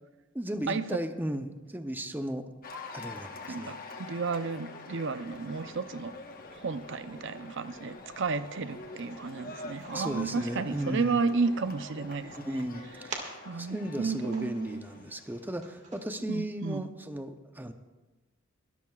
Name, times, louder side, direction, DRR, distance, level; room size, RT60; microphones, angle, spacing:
voice 1, 0.3-2.5 2.9-3.8 9.9-11.2 12.3-17.7, right 1 dB, 10° right, 8 dB, 0.7 m, -36 dB
Cheering / Applause, 2.6-16.0, left 3 dB, 45° left, 1.2 m, -46 dB
voice 2, 3.5-6.2 6.6-12.6 13.4-14.8 16.3-16.9, right 4 dB, 60° right, 12 dB, 0.6 m, -32 dB
Dog / Bird, 5.1-13.1, left 1 dB, 70° left, 4.6 m, -57 dB
sound 1, 8.2-16.0, right 3 dB, 35° right, 1.9 m, -49 dB
21.5 x 13.0 x 2.4 m, 1.2 s
head